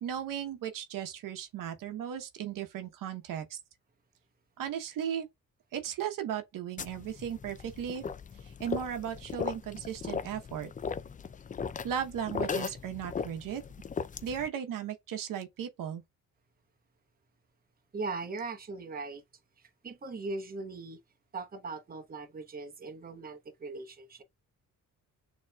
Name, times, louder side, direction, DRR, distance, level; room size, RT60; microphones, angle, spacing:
voice 1, 0.0-3.6 4.6-5.3 5.7-8.0 8.6-10.7 11.8-13.6 14.2-16.0, right 9 dB, 90° right, 1.0 m, -36 dB
sound 1, 6.8-14.5, left 6 dB, 25° left, 0.4 m, -38 dB
voice 2, 17.9-19.2 19.6-21.0 21.3-24.2, right 3 dB, 30° right, 0.9 m, -39 dB
6.6 x 3.0 x 2.3 m
cardioid pair, 110°, 32 cm